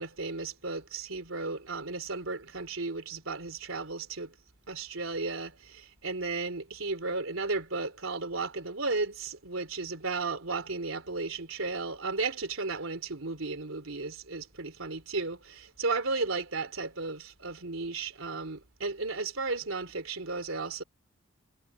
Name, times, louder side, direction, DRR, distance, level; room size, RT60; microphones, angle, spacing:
voice 1, 0.0-4.3 4.7-20.8, right 3 dB, 85° right, 3.4 m, -34 dB
head